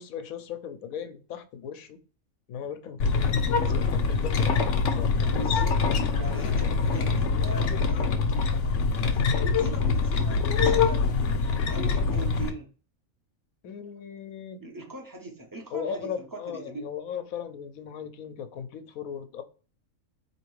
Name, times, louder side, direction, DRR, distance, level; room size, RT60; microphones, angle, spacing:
voice 1, 0.0-2.0 2.5-5.8 13.6-14.6 15.7-19.4, left 7 dB, 85° left, 1.0 m, -38 dB
sound 1, 3.0-12.5, left 4 dB, 65° left, 0.9 m, -24 dB
voice 2, 5.3-8.1 8.9-11.3 11.7-12.7 14.6-16.9, right 2 dB, 20° right, 0.6 m, -40 dB
4.2 x 2.9 x 3.1 m
omnidirectional pair, 1.5 m